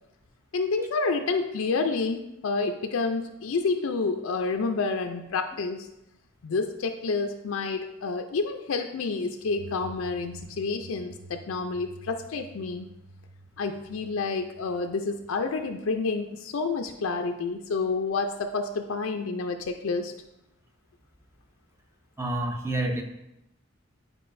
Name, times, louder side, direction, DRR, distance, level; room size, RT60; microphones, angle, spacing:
voice 1, 0.5-5.9 6.4-12.9 13.6-20.1, left 4 dB, 85° left, 5 dB, 0.4 m, -29 dB
sound 1, 9.4-16.0, right 3 dB, 85° right, 0.6 m, -49 dB
voice 2, 22.2-23.0, right 1 dB, 15° right, 3 dB, 0.6 m, -28 dB
9.5 x 4.7 x 2.6 m, 0.88 s
head